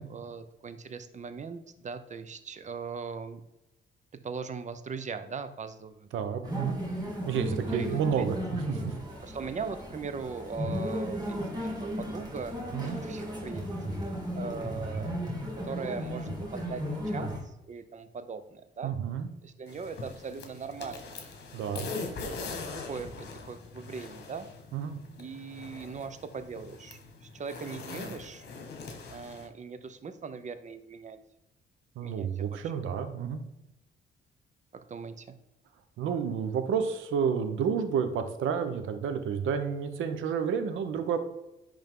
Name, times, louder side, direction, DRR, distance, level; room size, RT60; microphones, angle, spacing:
voice 1, 0.0-3.4 4.2-6.1 7.3-8.0 9.2-12.5 12.8-13.6 14.1-15.1 15.6-18.9 19.4-21.0 22.8-24.5 25.2-28.4 29.1-31.2 32.0-32.7 34.9-35.3, right 5 dB, 35° right, 10 dB, 0.7 m, -40 dB
voice 2, 6.1-6.8 7.3-8.9 12.7-13.0 18.8-19.3 21.5-21.9 24.7-25.0 32.0-33.4 36.0-41.2, right 7 dB, 80° right, 8 dB, 0.9 m, -30 dB
sound 1, 6.4-17.4, equal, 20° right, 2.1 m, -35 dB
sound 2, 19.7-29.5, left 3 dB, 60° left, 1.4 m, -42 dB
10.5 x 3.6 x 3.8 m, 0.91 s
cardioid pair, 90°, 20 cm